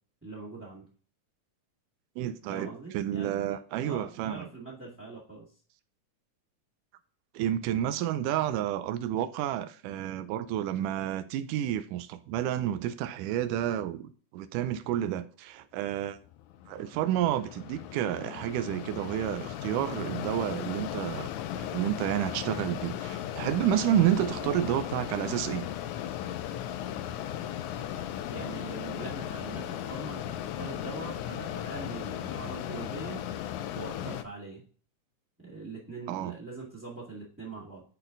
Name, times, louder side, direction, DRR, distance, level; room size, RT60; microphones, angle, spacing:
voice 1, 0.2-0.8 2.5-5.5 24.3-24.7 28.3-33.2 33.7-34.6 35.4-37.8, right 3 dB, 5° right, 1.2 m, -42 dB
voice 2, 2.2-4.5 7.3-16.2 16.7-21.3 21.6-25.6 36.1-36.4, right 11 dB, 85° right, 2.1 m, -30 dB
Mechanisms, 16.2-34.2, left 11 dB, 80° left, 1.8 m, -36 dB
10.0 x 4.2 x 3.9 m
omnidirectional pair, 3.7 m